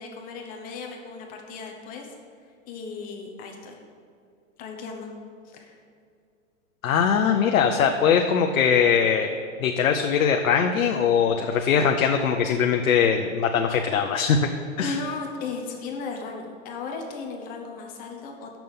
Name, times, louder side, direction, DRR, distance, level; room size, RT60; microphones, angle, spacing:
voice 1, 0.0-2.1 2.7-3.8 4.6-5.1 5.4-5.8 14.8-18.6, left 4 dB, 20° left, 2 dB, 0.9 m, -36 dB
voice 2, 6.8-9.3 9.6-14.4 14.8-15.0, left 7 dB, 85° left, 4 dB, 0.8 m, -21 dB
6.9 x 6.0 x 7.2 m, 2.3 s
hypercardioid pair, 150°, 40 cm